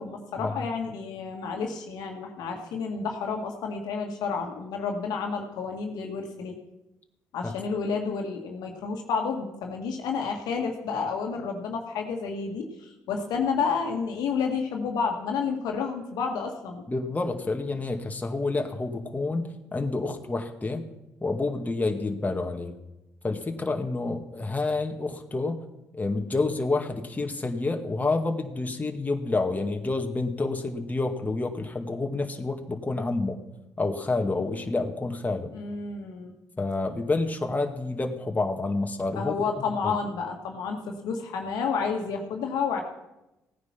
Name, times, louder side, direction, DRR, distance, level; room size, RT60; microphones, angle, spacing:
voice 1, 0.0-6.6 7.3-16.9 35.5-36.3 39.1-42.8, left 5 dB, 70° left, 3 dB, 1.9 m, -30 dB
voice 2, 16.9-20.8 21.2-22.7 23.2-25.6 25.9-33.4 33.8-35.5 36.6-40.0, left 3 dB, 25° left, 3 dB, 2.1 m, -29 dB
16.5 x 9.4 x 6.0 m, 0.96 s
hypercardioid pair, 50°, 7 cm